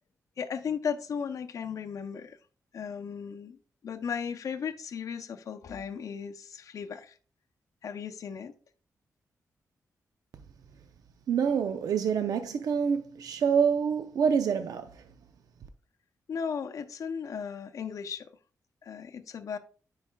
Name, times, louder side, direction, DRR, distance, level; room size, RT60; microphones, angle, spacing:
voice 1, 0.4-2.4 2.7-7.2 7.8-8.5 16.3-18.3 18.8-19.6, left 6 dB, 65° left, 0.6 m, -36 dB
voice 2, 11.3-15.0, right 7 dB, 80° right, 0.5 m, -27 dB
9.8 x 4.8 x 2.2 m
wide cardioid pair, 110°, 6 cm